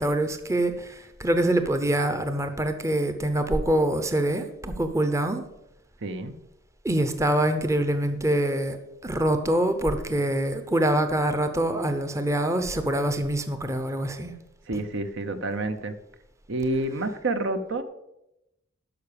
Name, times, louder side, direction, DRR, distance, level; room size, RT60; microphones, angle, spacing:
voice 1, 0.0-5.5 6.8-8.8 9.0-14.3, right 1 dB, 15° right, 0.7 m, -25 dB
voice 2, 6.0-6.3 14.7-16.0 16.5-17.8, right 2 dB, 60° right, 0.8 m, -28 dB
12.0 x 5.7 x 6.8 m
head